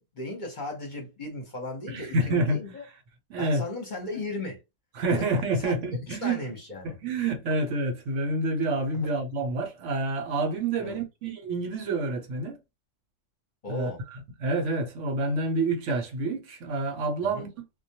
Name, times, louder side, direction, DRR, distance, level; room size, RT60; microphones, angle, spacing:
voice 1, 0.0-2.8 3.4-4.6 5.1-5.2 5.6-5.8 6.1-6.9 8.9-9.1 10.8-11.0 13.6-14.0 17.2-17.5, left 2 dB, 45° left, 0.8 m, -36 dB
voice 2, 1.9-2.6 3.3-3.6 5.0-6.4 6.8-12.6 13.7-13.9 14.4-17.5, right 2 dB, 70° right, 0.9 m, -28 dB
2.2 x 2.1 x 2.8 m
omnidirectional pair, 1.4 m